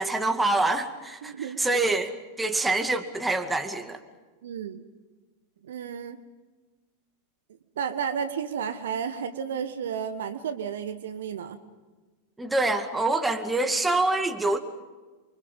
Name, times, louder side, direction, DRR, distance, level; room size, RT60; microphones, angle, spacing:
voice 1, 0.0-2.1 2.4-4.0 12.4-14.6, right 2 dB, 10° right, 6 dB, 2.3 m, -25 dB
voice 2, 1.2-1.8 4.4-4.8 5.6-6.2 7.8-11.6, right 7 dB, 60° right, 11 dB, 1.4 m, -32 dB
29.0 x 25.0 x 5.5 m, 1.3 s
figure-of-eight pair, 90°, 0 cm